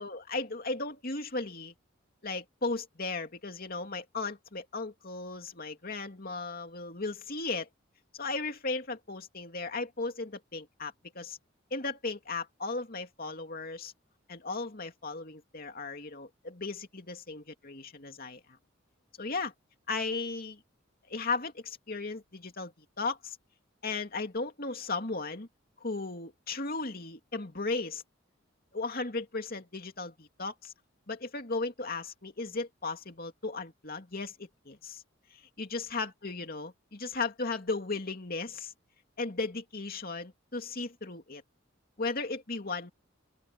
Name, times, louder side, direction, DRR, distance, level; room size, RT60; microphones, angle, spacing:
voice 1, 0.0-1.7 2.2-7.7 8.1-11.4 11.7-13.9 14.3-18.4 19.2-19.5 19.9-20.6 21.1-23.4 23.8-25.5 25.8-28.0 28.7-30.7 31.1-35.0 35.3-38.7 39.2-41.4 42.0-42.9, left 3 dB, 50° left, 2.6 m, -36 dB
open air
head